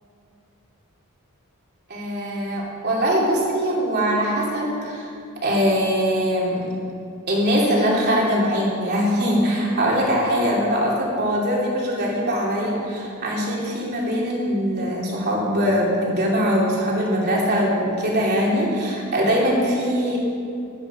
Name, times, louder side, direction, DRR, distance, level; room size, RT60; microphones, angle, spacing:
voice 1, 1.9-5.1 5.4-6.7 7.3-20.2, equal, 50° right, -4 dB, 3.1 m, -22 dB
13.5 x 11.5 x 5.1 m, 2.5 s
head